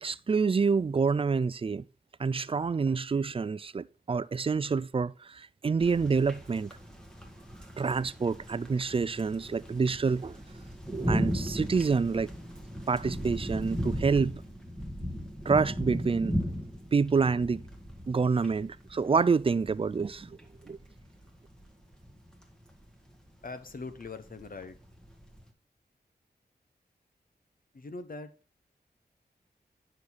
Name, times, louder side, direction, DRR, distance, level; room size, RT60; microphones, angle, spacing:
voice 1, 0.0-1.9 2.2-6.8 7.8-10.4 10.9-12.3 12.9-14.4 15.5-16.3 16.9-17.6 18.1-20.4 20.6-20.8, right 5 dB, 30° right, 0.4 m, -27 dB
sound 1, 5.8-25.5, equal, 5° left, 1.8 m, -37 dB
voice 2, 23.4-24.8 27.7-28.3, left 3 dB, 55° left, 1.1 m, -41 dB
9.7 x 6.5 x 4.2 m
wide cardioid pair, 100°, 18 cm